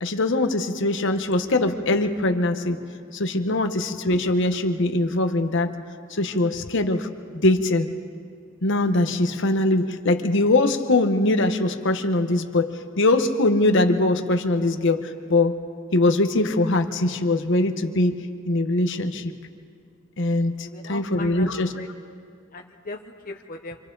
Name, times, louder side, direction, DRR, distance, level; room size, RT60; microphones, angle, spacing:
voice 1, 0.0-2.8 3.1-5.7 6.1-7.1 7.4-7.9 8.6-15.6 15.9-18.2 18.5-19.3 20.2-21.7, left 2 dB, 60° left, 7 dB, 1.0 m, -22 dB
voice 2, 20.6-21.9 22.5-23.8, left 2 dB, 40° left, 2 dB, 0.8 m, -39 dB
27.5 x 25.0 x 3.9 m, 2.3 s
head